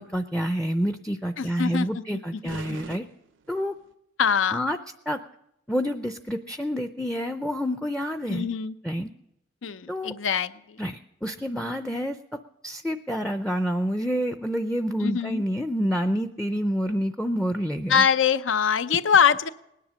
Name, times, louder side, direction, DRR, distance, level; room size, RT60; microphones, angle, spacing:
voice 1, 0.0-3.1 3.5-3.7 4.5-4.8 5.1-5.2 5.7-8.5 8.8-9.1 9.9-10.1 10.8-18.0, equal, 5° left, 9 dB, 0.4 m, -28 dB
voice 2, 1.4-2.8 4.2-4.6 8.3-8.7 9.6-10.8 15.0-15.4 17.9-19.5, left 7 dB, 85° left, 14 dB, 0.6 m, -24 dB
sound 1, 2.5-3.9, right 5 dB, 75° right, 0.5 m, -44 dB
19.0 x 10.0 x 6.3 m, 0.83 s
head